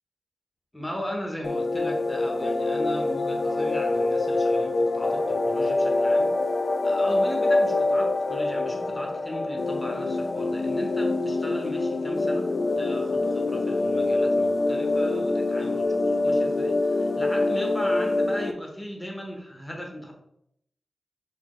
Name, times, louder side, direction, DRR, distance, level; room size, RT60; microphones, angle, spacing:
voice 1, 0.7-6.3 6.8-12.5 12.8-20.1, equal, 10° left, 1 dB, 0.9 m, -37 dB
sound 1, 1.4-18.5, left 2 dB, 55° left, 0.3 m, -25 dB
4.3 x 2.7 x 3.0 m, 0.75 s
wide cardioid pair, 75°, 0 cm